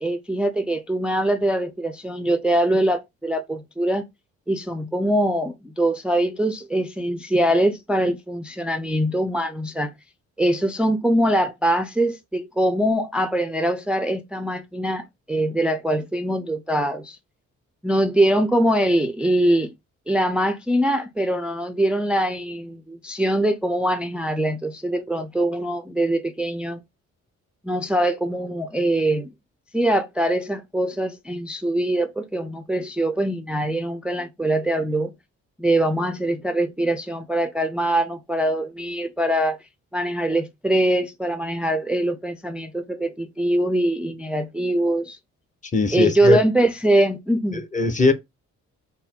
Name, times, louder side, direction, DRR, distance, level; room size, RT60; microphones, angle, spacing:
voice 1, 0.0-4.0 4.5-9.9 10.4-17.2 17.8-19.7 20.1-26.8 27.6-29.3 29.7-35.1 35.6-39.6 39.9-45.2 45.9-47.6, right 1 dB, 5° right, 0.4 m, -23 dB
voice 2, 45.7-46.4 47.5-48.1, left 3 dB, 25° left, 0.8 m, -20 dB
4.2 x 2.2 x 3.6 m
cardioid pair, 90°, 30 cm